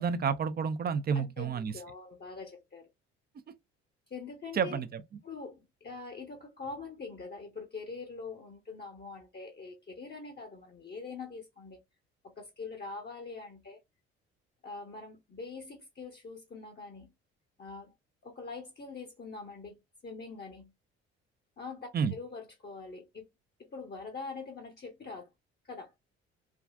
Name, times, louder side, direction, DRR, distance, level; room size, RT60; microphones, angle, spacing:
voice 1, 0.0-1.7 4.5-5.0 21.9-22.1, right 6 dB, 30° right, 0.5 m, -30 dB
voice 2, 1.1-2.9 4.1-4.8 5.2-11.8 12.2-13.8 14.6-17.1 17.6-17.9 18.2-19.8 20.0-20.7 21.6-23.3 23.6-25.3 25.6-25.9, left 4 dB, 30° left, 0.9 m, -44 dB
3.5 x 2.3 x 2.3 m
hypercardioid pair, 50°, 33 cm